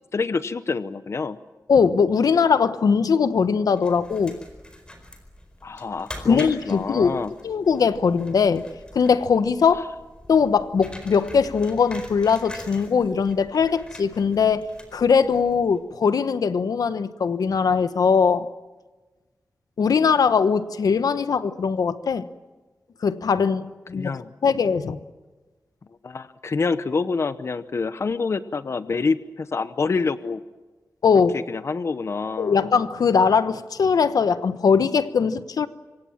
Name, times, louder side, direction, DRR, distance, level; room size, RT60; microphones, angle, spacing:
voice 1, 0.1-1.4 5.6-7.3 23.9-24.3 26.0-30.4 31.3-32.7, left 4 dB, 50° left, 0.9 m, -27 dB
voice 2, 1.7-4.4 6.3-7.1 7.4-8.7 8.9-9.8 10.3-18.5 19.8-22.2 23.0-24.1 24.4-25.0 31.0-31.3 32.4-35.7, left 6 dB, 85° left, 1.1 m, -20 dB
sound 1, 3.8-15.8, left 1 dB, 15° left, 4.4 m, -44 dB
26.5 x 24.5 x 7.3 m
wide cardioid pair, 150°, 6 cm